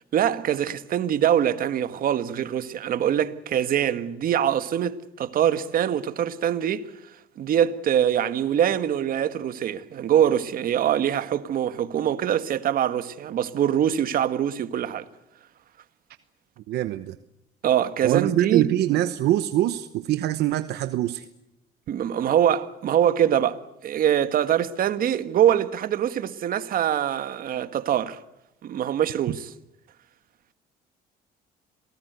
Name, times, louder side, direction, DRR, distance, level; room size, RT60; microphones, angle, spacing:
voice 1, 0.1-6.9 7.4-15.0 17.6-18.6 21.9-28.2 28.6-29.5, right 10 dB, 60° right, 1.6 m, -23 dB
voice 2, 16.7-17.2 18.0-21.3, right 14 dB, 75° right, 1.0 m, -24 dB
27.5 x 19.0 x 8.1 m
cardioid pair, 110°, 17 cm